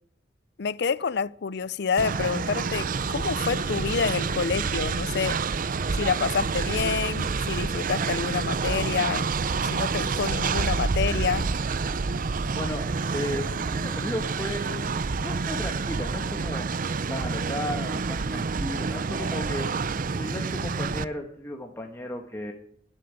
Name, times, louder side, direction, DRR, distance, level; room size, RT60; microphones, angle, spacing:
voice 1, 0.6-5.4 5.9-9.3 9.6-11.5, left 5 dB, 60° left, 0.5 m, -28 dB
Train, 2.0-21.0, right 4 dB, 50° right, 0.5 m, -28 dB
voice 2, 12.5-12.8 13.1-16.7 17.1-19.7 20.1-22.5, left 1 dB, 15° left, 1.4 m, -35 dB
11.5 x 10.0 x 9.5 m
head